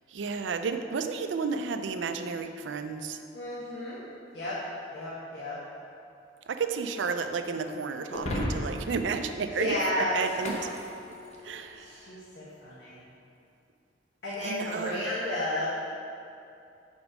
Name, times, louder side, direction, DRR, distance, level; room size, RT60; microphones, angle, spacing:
voice 1, 0.1-3.2 6.5-9.8 10.1-10.7 11.4-12.0 14.4-15.0, right 5 dB, 90° right, 8 dB, 0.4 m, -32 dB
voice 2, 3.3-4.0 4.3-4.6 4.9-5.6 9.4-10.1 11.8-13.0 14.2-15.7, left 1 dB, 65° left, -8 dB, 1.2 m, -33 dB
Shatter, 8.1-11.6, left 1 dB, 40° left, 0.8 m, -36 dB
6.0 x 5.3 x 4.8 m, 2.6 s
head